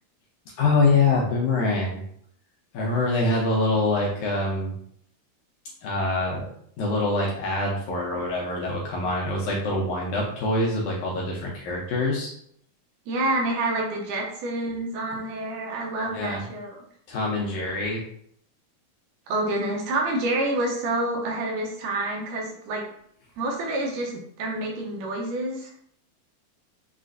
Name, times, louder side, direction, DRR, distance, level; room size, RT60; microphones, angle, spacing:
voice 1, 0.6-2.0 2.7-4.7 5.8-6.5 6.8-12.3 14.7-14.8 16.1-16.4 17.1-18.0, left 2 dB, 80° left, -3 dB, 1.8 m, -25 dB
voice 2, 13.1-16.8 19.3-22.8 23.4-24.1 24.4-25.7, right 2 dB, 75° right, 0 dB, 2.2 m, -28 dB
6.4 x 2.4 x 2.5 m, 0.67 s
omnidirectional pair, 4.0 m